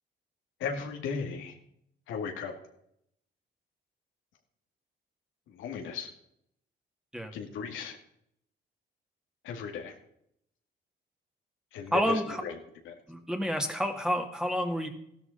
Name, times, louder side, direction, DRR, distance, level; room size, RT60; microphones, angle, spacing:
voice 1, 0.6-1.5 2.1-2.5 5.5-6.1 7.3-8.0 9.4-9.9 11.7-12.5 12.9-13.0, left 5 dB, 90° left, 3 dB, 2.3 m, -36 dB
voice 2, 11.9-12.4 13.1-14.9, equal, 5° right, 4 dB, 2.3 m, -29 dB
14.5 x 12.5 x 4.1 m, 0.73 s
cardioid pair, 90°, 20 cm